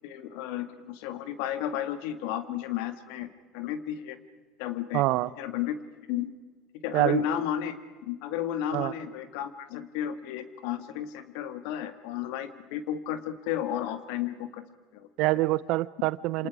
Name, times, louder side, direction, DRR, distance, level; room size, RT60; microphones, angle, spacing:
voice 1, 0.0-3.3 3.5-4.2 4.6-5.0 5.4-5.8 6.1-6.3 6.8-7.7 8.0-14.6 14.9-15.1 16.4-16.5, left 10 dB, 70° left, 10 dB, 2.0 m, -33 dB
voice 2, 4.9-5.3 6.9-7.2 8.7-8.9 15.2-16.5, right 19 dB, 60° right, 19 dB, 0.7 m, -25 dB
28.0 x 27.5 x 5.0 m, 1.4 s
hypercardioid pair, 75°, 0 cm